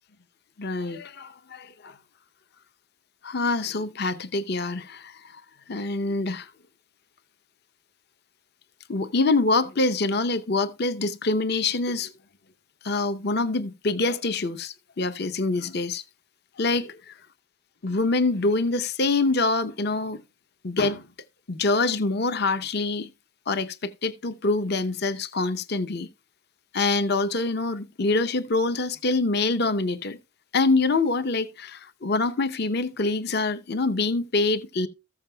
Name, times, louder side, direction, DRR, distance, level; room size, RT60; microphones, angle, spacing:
voice 1, 0.6-1.9 3.2-5.4 5.7-6.5 8.9-12.1 12.8-16.0 16.6-17.0 17.8-20.2 20.6-21.1 21.5-23.1 23.5-26.1 26.7-30.2 30.5-34.9, left 3 dB, 50° left, 0.8 m, -25 dB
14.5 x 7.2 x 2.3 m
head